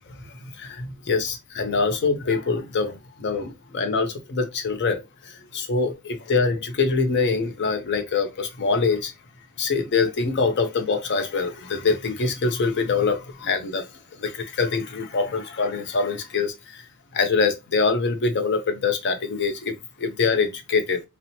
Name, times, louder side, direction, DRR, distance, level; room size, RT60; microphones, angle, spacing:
voice 1, 0.4-9.1 9.6-13.9 14.2-16.8 17.1-21.0, left 4 dB, 55° left, 0.5 m, -24 dB
2.9 x 2.0 x 2.7 m
head